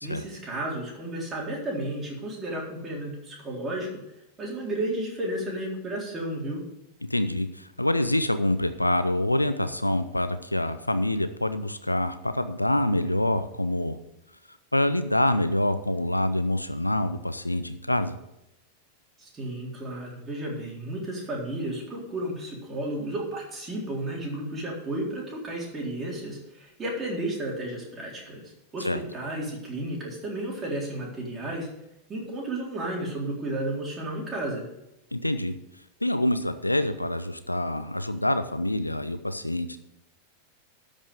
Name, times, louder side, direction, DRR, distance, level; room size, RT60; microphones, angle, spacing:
voice 1, 0.0-3.9 4.4-6.6 19.2-28.4 28.7-31.7 32.1-34.7, right 1 dB, 20° right, -3 dB, 3.9 m, -33 dB
voice 2, 7.0-14.0 14.7-18.1 28.8-29.0 35.1-35.5 36.0-39.8, left 1 dB, 85° left, 11 dB, 0.7 m, -26 dB
12.5 x 5.4 x 6.7 m, 0.87 s
figure-of-eight pair, 90°, 0 cm